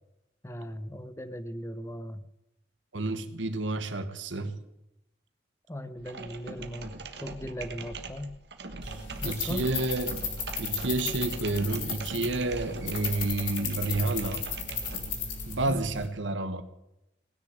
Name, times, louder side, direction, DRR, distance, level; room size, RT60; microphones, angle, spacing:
voice 1, 0.4-2.2 5.7-8.4 9.2-9.6 15.7-15.8, equal, 15° left, 0.8 m, -38 dB
voice 2, 2.9-4.6 8.8-10.2 10.6-14.4 15.5-16.6, right 2 dB, 85° right, 1.3 m, -30 dB
sound 1, 6.0-15.3, right 4 dB, 60° right, 1.4 m, -42 dB
sound 2, 8.8-16.1, left 5 dB, 45° left, 4.1 m, -35 dB
19.5 x 6.8 x 9.6 m
head